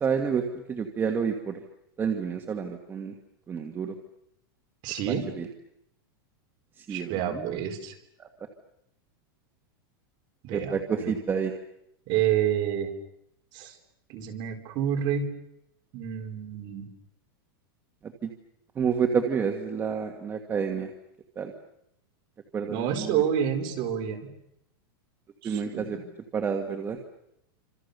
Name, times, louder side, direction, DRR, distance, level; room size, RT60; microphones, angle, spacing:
voice 1, 0.0-1.6 2.0-3.1 3.5-3.9 5.1-5.5 6.8-7.6 8.2-8.3 10.5-11.5 18.2-18.3 18.8-20.9 21.4-21.5 22.5-23.2 25.4-26.0 26.3-27.0, right 6 dB, 15° right, 5 dB, 1.6 m, -29 dB
voice 2, 4.8-5.3 6.9-7.9 10.4-11.2 12.1-12.9 13.5-13.7 14.1-15.3 15.9-16.9 22.7-24.3 25.4-26.0, right 9 dB, 40° right, 4 dB, 4.3 m, -29 dB
29.0 x 26.5 x 6.7 m, 0.79 s
supercardioid pair, 160°, 12 cm